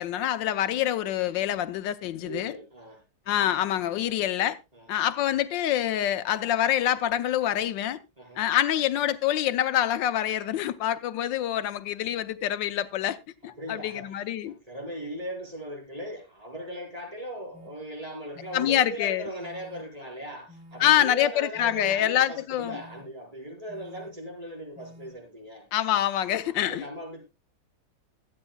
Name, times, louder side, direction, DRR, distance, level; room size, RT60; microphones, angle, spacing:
voice 1, 0.0-2.6 3.3-4.6 4.9-8.0 8.4-13.2 13.4-14.6 18.5-19.3 20.8-22.8 25.7-26.9, left 11 dB, 90° left, 1.5 m, -26 dB
voice 2, 2.2-3.0 4.7-4.9 8.2-8.4 13.6-14.2 14.5-25.6 26.2-27.2, equal, 20° right, 5.0 m, -39 dB
sound 1, 17.5-17.7 18.3-18.8 19.4-19.8 20.5-20.9 21.5-22.0 22.6-23.0 23.7-24.1 24.7-25.1, left 1 dB, 5° right, 3.9 m, -49 dB
22.5 x 8.6 x 2.3 m
omnidirectional pair, 1.9 m